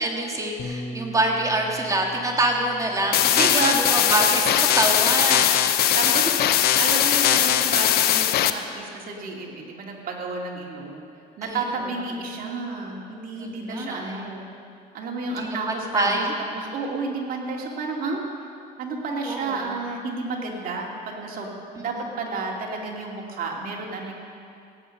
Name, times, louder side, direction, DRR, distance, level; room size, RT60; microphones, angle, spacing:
voice 1, 0.0-6.2 11.4-11.6 13.4-14.3 15.4-16.3 19.2-19.7 21.7-22.1, right 1 dB, 20° right, 1 dB, 1.8 m, -26 dB
Bass guitar, 0.6-6.8, equal, 40° left, 1.2 m, -42 dB
sound 1, 3.1-8.5, left 11 dB, 70° left, 0.7 m, -20 dB
voice 2, 3.3-3.8 5.9-6.3 6.8-11.0 11.4-14.5 14.9-16.2 16.5-18.2 18.8-24.1, right 3 dB, 55° right, -1 dB, 2.6 m, -31 dB
16.5 x 9.4 x 6.5 m, 2.5 s
cardioid pair, 110°, 17 cm